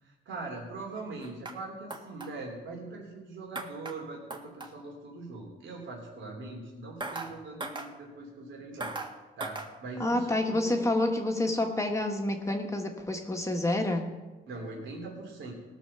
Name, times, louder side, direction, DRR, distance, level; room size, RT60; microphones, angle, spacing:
voice 1, 0.0-8.9 9.4-10.8 14.5-15.5, right 3 dB, 75° right, -2 dB, 3.2 m, -41 dB
sound 1, 1.2-1.6 1.9-2.3 3.5-4.0 4.3-4.7 7.0-7.3 7.6-7.9 8.8-9.1 9.4-9.7, right 2 dB, 25° right, 1.5 m, -37 dB
voice 2, 10.0-14.1, left 1 dB, 15° left, 2 dB, 1.4 m, -28 dB
18.0 x 6.1 x 6.8 m, 1.2 s
cardioid pair, 90°, 20 cm